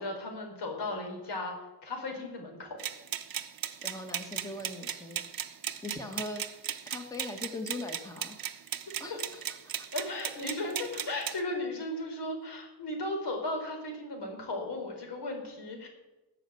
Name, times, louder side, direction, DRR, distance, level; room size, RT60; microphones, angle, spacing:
voice 1, 0.0-1.5 1.8-2.8 9.1-9.2 9.9-15.9, left 2 dB, 70° left, 2 dB, 4.6 m, -36 dB
sound 1, 2.8-11.4, right 9 dB, 55° right, 0.9 m, -37 dB
voice 2, 3.8-5.2 5.8-6.4 6.9-8.4 9.0-9.4 9.8-9.9, left 2 dB, 10° left, 4 dB, 1.3 m, -40 dB
18.5 x 6.7 x 9.0 m, 1.1 s
wide cardioid pair, 160°, 42 cm